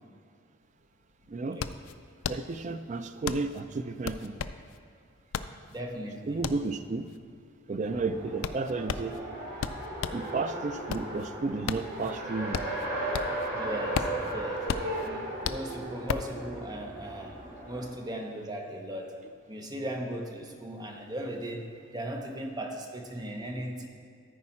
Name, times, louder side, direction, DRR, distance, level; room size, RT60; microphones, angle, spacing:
sound 1, 0.6-0.7 1.0-10.3 10.7-13.5 13.8-16.4, left 7 dB, 75° left, 0.3 m, -35 dB
voice 1, 2.3-4.3 6.3-7.1 7.7-9.2 10.1-12.6, right 3 dB, 35° right, 9 dB, 0.4 m, -32 dB
voice 2, 5.7-6.4 13.5-14.7 15.0-17.4 17.7-19.2 19.5-23.9, right 1 dB, 20° right, 2 dB, 0.7 m, -37 dB
Race car auto racing, 7.8-17.9, right 1 dB, 50° right, 2.6 m, -36 dB
14.0 x 4.8 x 4.3 m, 2.2 s
head